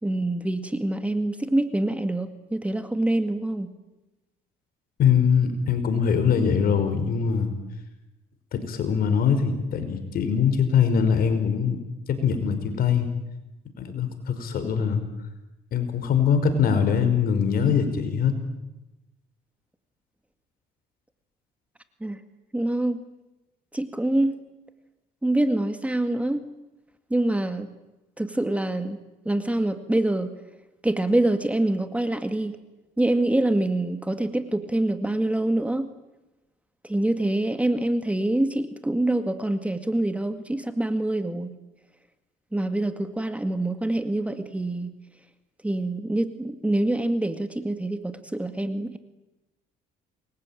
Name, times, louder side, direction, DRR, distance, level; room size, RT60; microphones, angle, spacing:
voice 1, 0.0-3.7 22.0-22.2 22.5-23.0 23.7-24.4 25.2-26.5 27.1-27.7 28.2-29.0 29.3-30.3 30.8-32.6 33.0-35.9 36.8-41.5 42.5-44.9 45.6-49.0, right 1 dB, 10° right, 9 dB, 2.0 m, -25 dB
voice 2, 5.0-7.5 8.5-11.8 12.1-13.1 13.8-15.0 15.7-18.3, left 7 dB, 60° left, 9 dB, 5.5 m, -22 dB
28.0 x 22.0 x 9.1 m, 1.0 s
cardioid pair, 110°, 17 cm